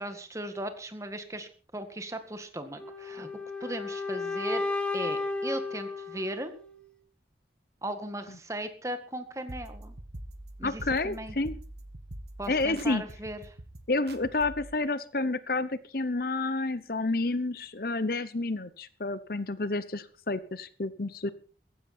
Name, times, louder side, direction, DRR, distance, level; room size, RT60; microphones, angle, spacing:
voice 1, 0.0-3.3 3.6-4.6 4.9-6.5 7.8-10.0 10.6-11.3 12.4-13.6, right 1 dB, 15° right, 8 dB, 1.9 m, -37 dB
sound 1, 2.8-6.8, left 3 dB, 5° left, 2.2 m, -33 dB
sound 2, 9.5-14.7, right 1 dB, 65° right, 1.6 m, -44 dB
voice 2, 10.6-11.6 12.5-13.0 13.9-21.3, left 2 dB, 55° left, 15 dB, 0.9 m, -30 dB
16.0 x 15.5 x 4.4 m, 0.38 s
head